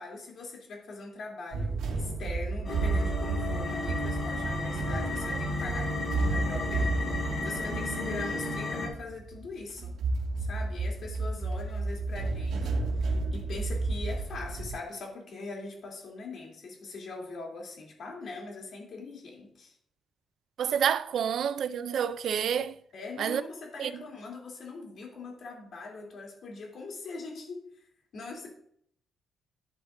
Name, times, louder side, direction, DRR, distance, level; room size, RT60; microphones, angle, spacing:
voice 1, 0.0-9.9 10.4-19.7 22.9-27.6 28.1-28.5, left 3 dB, 50° left, 3.2 m, -42 dB
sound 1, 1.5-14.7, right 3 dB, 85° right, 2.1 m, -32 dB
sound 2, 2.6-8.9, left 2 dB, 35° left, 2.4 m, -33 dB
voice 2, 20.6-22.8 23.2-23.4 23.8-23.9, right 8 dB, 55° right, 0.5 m, -28 dB
11.0 x 10.5 x 2.7 m
cardioid pair, 170°, 0 cm